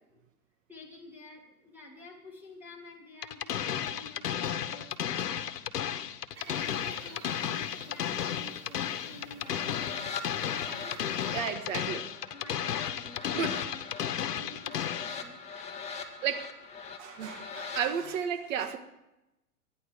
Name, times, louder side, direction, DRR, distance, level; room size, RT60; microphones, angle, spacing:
voice 1, 0.7-5.4 6.4-10.1 10.5-12.0 12.3-13.3 13.6-13.9 14.4-15.4, left 2 dB, 5° right, -2 dB, 3.3 m, -51 dB
sound 1, 3.2-15.2, left 9 dB, 80° left, 1.2 m, -33 dB
sound 2, 6.3-11.4, right 3 dB, 75° right, 6.8 m, -51 dB
sound 3, 9.4-17.8, left 5 dB, 15° left, 1.8 m, -42 dB
voice 2, 11.3-12.1 13.3-13.6 16.2-16.6 17.0-18.8, right 7 dB, 55° right, 8 dB, 1.6 m, -33 dB
25.0 x 10.0 x 5.0 m, 0.94 s
hypercardioid pair, 130°, 47 cm